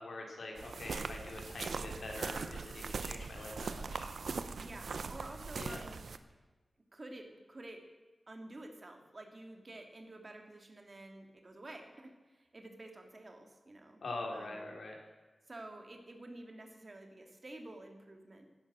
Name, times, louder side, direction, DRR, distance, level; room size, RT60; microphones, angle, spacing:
voice 1, 0.0-4.1 5.6-5.8 14.0-15.0, left 2 dB, 75° left, 0 dB, 4.2 m, -44 dB
sound 1, 0.6-6.2, right 4 dB, 85° right, 0.9 m, -41 dB
voice 2, 4.5-6.0 6.9-7.8 8.3-14.0 14.3-14.6 15.5-18.5, right 2 dB, 35° right, 4 dB, 2.7 m, -50 dB
16.5 x 12.5 x 6.3 m, 1.3 s
wide cardioid pair, 110°, 0 cm